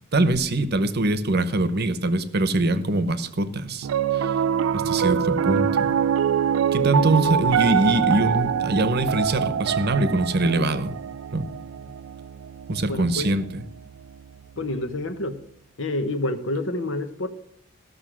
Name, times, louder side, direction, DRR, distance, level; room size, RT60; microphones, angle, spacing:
voice 1, 0.0-4.4 4.7-5.9 6.7-11.0 11.3-11.5 12.7-13.6, right 2 dB, 55° right, 13 dB, 0.9 m, -23 dB
Piano, 3.8-14.2, right 8 dB, 80° right, 0.4 m, -25 dB
voice 2, 12.9-13.3 14.6-15.4 15.8-17.3, left 2 dB, 70° left, 10 dB, 1.1 m, -28 dB
14.5 x 6.5 x 6.2 m, 0.67 s
head